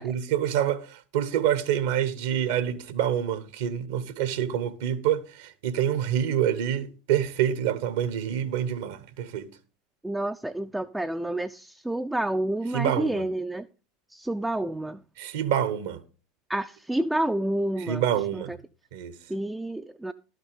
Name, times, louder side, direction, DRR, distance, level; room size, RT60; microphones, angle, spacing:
voice 1, 0.0-9.5 12.7-13.3 15.2-16.0 17.8-18.6 18.9-19.1, right 10 dB, 60° right, 1.1 m, -27 dB
voice 2, 10.0-13.7 14.1-15.0 16.5-18.0 18.3-18.6 19.3-20.1, right 1 dB, 5° right, 0.4 m, -29 dB
12.0 x 6.4 x 5.0 m
figure-of-eight pair, 75°, 0 cm